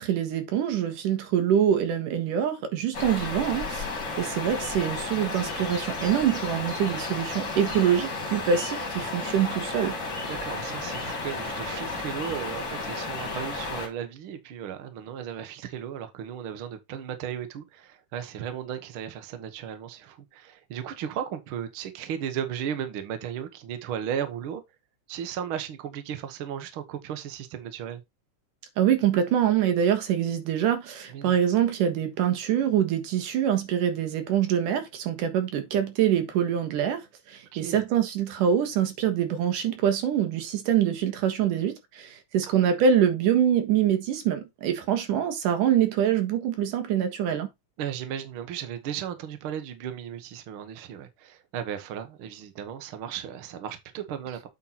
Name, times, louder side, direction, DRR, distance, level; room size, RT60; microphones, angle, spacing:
voice 1, 0.0-3.8 4.2-9.9 28.8-37.0 37.3-47.5, right 9 dB, 90° right, 3.0 m, -25 dB
sound 1, 2.9-13.9, left 3 dB, 30° left, 3.1 m, -33 dB
voice 2, 10.2-24.6 25.1-28.0 31.1-31.4 37.5-37.8 42.4-42.5 47.8-54.5, right 9 dB, 55° right, 1.6 m, -35 dB
8.4 x 4.4 x 4.2 m
omnidirectional pair, 3.6 m